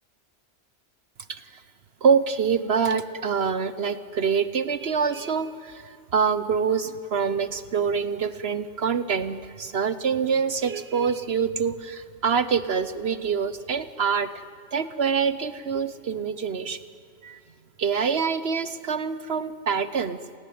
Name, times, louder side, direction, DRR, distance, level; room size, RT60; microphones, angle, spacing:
voice 1, 1.3-1.6 2.0-16.8 17.2-17.4 17.8-20.2, right 6 dB, 65° right, 14 dB, 1.1 m, -25 dB
28.0 x 18.5 x 9.3 m, 2.4 s
omnidirectional pair, 1.2 m